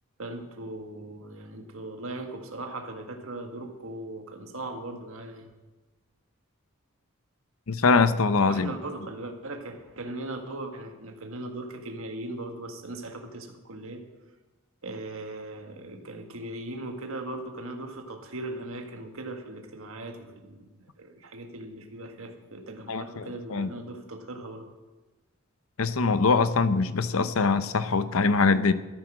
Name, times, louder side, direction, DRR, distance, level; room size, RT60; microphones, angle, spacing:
voice 1, 0.2-5.5 8.4-14.0 14.8-24.7, right 2 dB, 70° right, 4 dB, 1.7 m, -39 dB
voice 2, 7.7-8.7 22.9-23.2 23.5-23.7 25.8-28.7, left 4 dB, 75° left, 13 dB, 0.7 m, -23 dB
13.5 x 9.8 x 6.3 m, 1.2 s
head